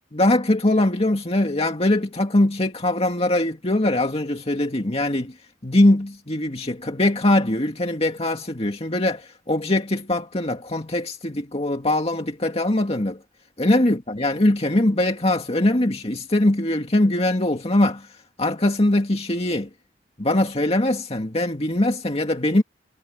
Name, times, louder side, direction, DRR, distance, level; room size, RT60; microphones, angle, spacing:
voice 1, 0.1-5.3 5.6-13.2 13.6-18.1 18.4-19.7 20.2-22.6, left 1 dB, 35° left, 2.1 m, -21 dB
head